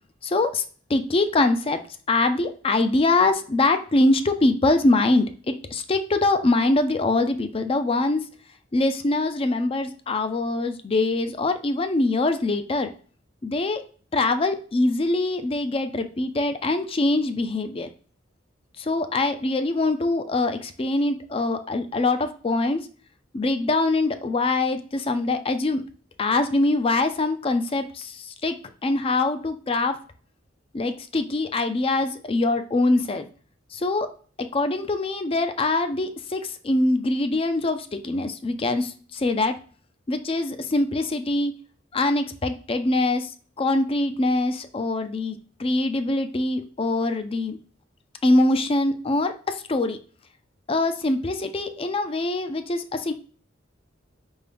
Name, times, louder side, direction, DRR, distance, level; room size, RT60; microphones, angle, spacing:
voice 1, 0.2-0.6 0.9-1.8 2.1-8.2 8.7-12.9 13.4-13.8 14.1-17.9 18.8-22.8 23.3-25.8 26.2-28.6 28.8-30.0 30.7-33.2 33.7-34.1 34.4-39.5 40.1-41.5 41.9-43.3 43.6-47.6 48.2-50.0 50.7-53.1, left 2 dB, 30° left, 9 dB, 0.4 m, -23 dB
5.4 x 2.2 x 3.4 m, 0.42 s
head